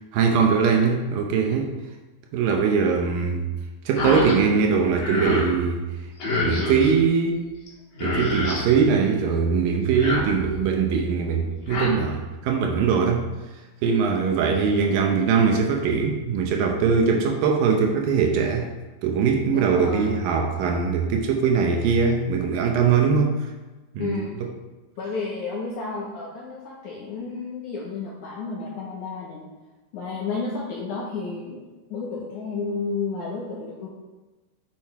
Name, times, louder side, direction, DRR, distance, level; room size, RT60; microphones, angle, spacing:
voice 1, 0.1-1.7 2.3-3.5 3.9-5.9 6.4-7.4 8.0-13.2 13.8-18.7 19.0-23.5 23.9-24.2, right 5 dB, 75° right, 2 dB, 2.2 m, -21 dB
sound 1, 4.0-4.4 4.7-5.5 6.2-6.9 7.7-7.8 7.9-8.7 9.8-10.7 11.4-11.9, left 2 dB, 30° left, 3.4 m, -27 dB
voice 2, 14.2-14.5 19.5-20.1 24.0-24.4 25.0-29.5 29.9-31.6 31.9-33.9, left 4 dB, 70° left, -3 dB, 1.8 m, -32 dB
7.7 x 7.4 x 4.7 m, 1.2 s
omnidirectional pair, 4.9 m